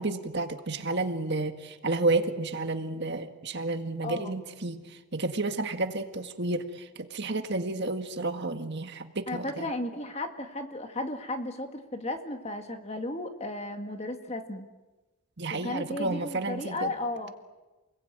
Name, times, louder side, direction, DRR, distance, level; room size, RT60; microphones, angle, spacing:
voice 1, 0.0-9.7 15.4-16.9, right 2 dB, 50° right, 7 dB, 1.7 m, -31 dB
voice 2, 4.0-4.3 9.3-14.7 15.5-17.3, left 2 dB, 30° left, 6 dB, 2.0 m, -34 dB
28.5 x 21.5 x 9.2 m, 1.2 s
head